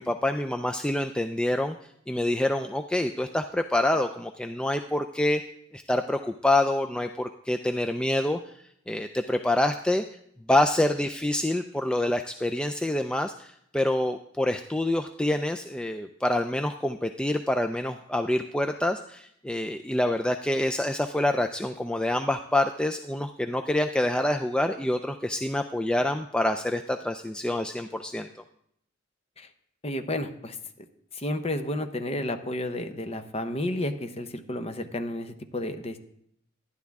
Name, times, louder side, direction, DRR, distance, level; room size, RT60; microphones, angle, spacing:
voice 1, 0.0-1.7 2.1-5.4 5.7-8.4 8.9-10.0 10.5-28.3, left 1 dB, 5° left, 6 dB, 0.3 m, -26 dB
voice 2, 29.8-30.6 31.2-36.0, left 1 dB, 30° left, 7 dB, 0.8 m, -31 dB
11.5 x 11.0 x 3.5 m, 0.71 s
head